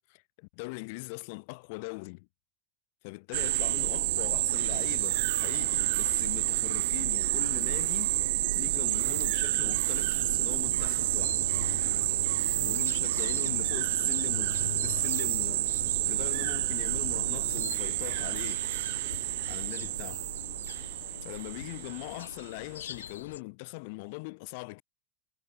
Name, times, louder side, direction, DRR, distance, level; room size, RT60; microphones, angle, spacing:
voice 1, 0.0-2.3 3.0-8.2 8.5-11.4 12.5-18.7 19.5-20.3 21.2-24.8, left 29 dB, 65° left, 3.3 m, -41 dB
sound 1, 3.3-22.4, right 18 dB, 75° right, 0.4 m, -29 dB
sound 2, 11.0-23.4, left 9 dB, 90° left, 0.7 m, -43 dB
hypercardioid pair, 100°, 0 cm